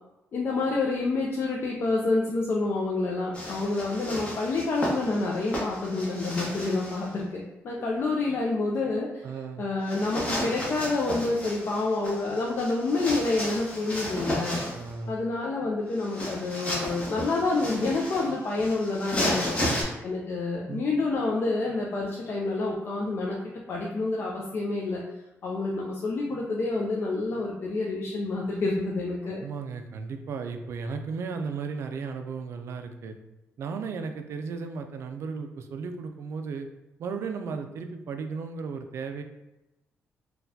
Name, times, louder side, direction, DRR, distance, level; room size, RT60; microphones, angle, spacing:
voice 1, 0.3-9.2 9.6-14.6 15.1-19.6 20.0-23.4 23.7-25.0 25.4-29.4, left 3 dB, 45° left, -2 dB, 0.4 m, -28 dB
sound 1, 3.3-7.1 9.9-14.9 15.9-19.8, left 1 dB, 25° left, 0.9 m, -33 dB
voice 2, 9.2-9.6 14.7-15.1 19.4-19.9 20.7-20.8 29.4-33.2 33.6-36.7 37.0-39.2, right 5 dB, 60° right, 6 dB, 0.3 m, -35 dB
4.0 x 2.2 x 2.7 m, 0.98 s
cardioid pair, 150°, 5 cm